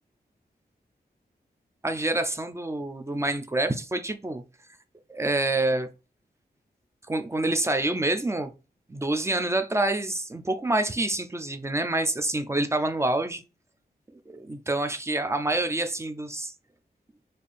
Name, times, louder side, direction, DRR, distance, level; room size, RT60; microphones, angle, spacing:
voice 1, 1.8-4.4 5.1-5.9 7.1-8.5 8.9-13.4 14.3-16.5, right 2 dB, 15° right, 0.4 m, -27 dB
4.2 x 2.6 x 3.3 m
wide cardioid pair, 140°, 17 cm